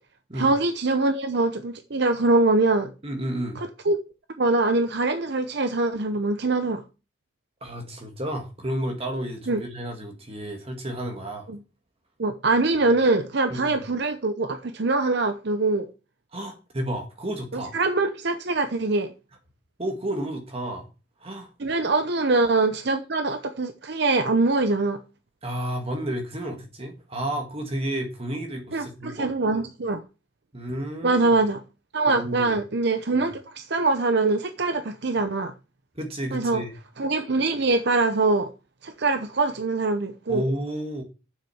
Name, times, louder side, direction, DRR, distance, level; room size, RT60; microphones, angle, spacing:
voice 1, 0.3-2.9 3.6-4.0 4.4-6.8 9.5-9.6 11.5-11.6 12.2-15.9 17.5-19.1 21.6-25.0 28.7-30.0 31.0-31.6 31.9-35.5 36.3-36.6 37.0-38.5 38.8-40.4, right 3 dB, 55° right, 0.8 m, -23 dB
voice 2, 3.0-3.6 7.6-11.5 13.5-13.8 16.3-17.7 19.8-20.9 21.2-21.5 25.4-29.3 30.5-31.3 32.1-32.6 33.1-33.3 36.0-36.7 40.3-41.0, right 1 dB, 30° right, 1.7 m, -31 dB
7.4 x 6.4 x 7.0 m
head